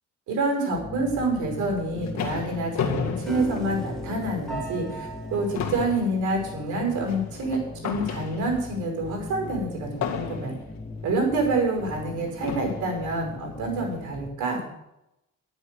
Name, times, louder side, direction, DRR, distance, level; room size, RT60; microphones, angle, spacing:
voice 1, 0.3-10.5 11.0-14.6, right 2 dB, 80° right, 1 dB, 5.5 m, -27 dB
sound 1, 0.7-14.3, left 3 dB, 15° left, 1.7 m, -39 dB
sound 2, 1.6-4.3 4.7-4.9 5.2-8.7 10.0-10.8 11.6-11.7 12.4-13.0, left 7 dB, 65° left, 2.0 m, -33 dB
Piano, 3.3-9.5, right 1 dB, ahead, 6.0 m, -39 dB
11.0 x 9.7 x 6.9 m, 0.86 s
cardioid pair, 90°, 30 cm